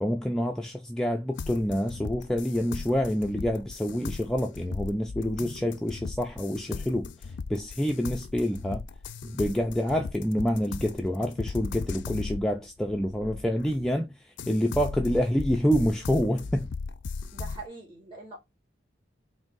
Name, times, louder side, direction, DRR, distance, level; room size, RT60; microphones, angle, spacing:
voice 1, 0.0-8.9 9.2-16.7, equal, 5° left, 0.3 m, -27 dB
sound 1, 1.4-14.0 14.4-17.7, left 4 dB, 85° left, 0.4 m, -38 dB
voice 2, 17.3-18.4, right 3 dB, 30° right, 2.2 m, -43 dB
3.4 x 2.6 x 3.9 m
head